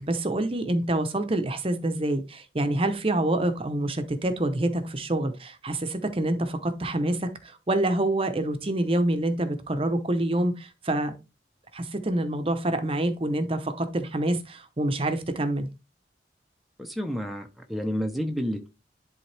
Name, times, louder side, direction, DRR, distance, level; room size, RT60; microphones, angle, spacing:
voice 1, 0.0-11.2 11.7-15.7, right 1 dB, 30° right, 0.8 m, -27 dB
voice 2, 16.8-18.7, equal, ahead, 0.7 m, -30 dB
11.0 x 3.6 x 3.4 m
head